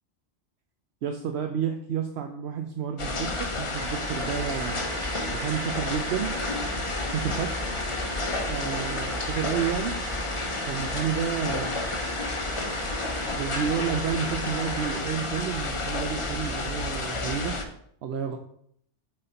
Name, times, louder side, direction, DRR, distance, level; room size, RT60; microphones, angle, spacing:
voice 1, 1.0-4.8 5.3-6.3 7.0-7.5 8.5-9.9 10.7-11.7 13.3-17.6 18.0-18.4, right 8 dB, 70° right, 5 dB, 0.8 m, -30 dB
sound 1, 3.0-17.6, left 2 dB, 30° left, 0.7 m, -31 dB
sound 2, 3.7-15.0 16.4-16.5, right 2 dB, 85° right, 1.5 m, -38 dB
7.6 x 4.2 x 3.8 m, 0.69 s
omnidirectional pair, 1.2 m